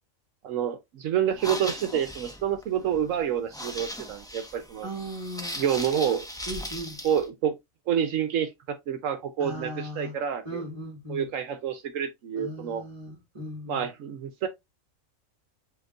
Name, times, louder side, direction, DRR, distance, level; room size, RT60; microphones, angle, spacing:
voice 1, 0.4-4.9 5.6-6.2 7.0-7.6 7.9-10.6 11.1-12.8 13.7-14.5, right 9 dB, 75° right, 1.0 m, -28 dB
sound 1, 1.3-7.2, equal, 5° left, 0.5 m, -38 dB
voice 2, 4.8-5.6 6.5-7.0 9.4-10.2 10.4-11.3 12.3-13.9, equal, 25° right, 1.3 m, -37 dB
7.6 x 2.9 x 2.3 m
omnidirectional pair, 1.4 m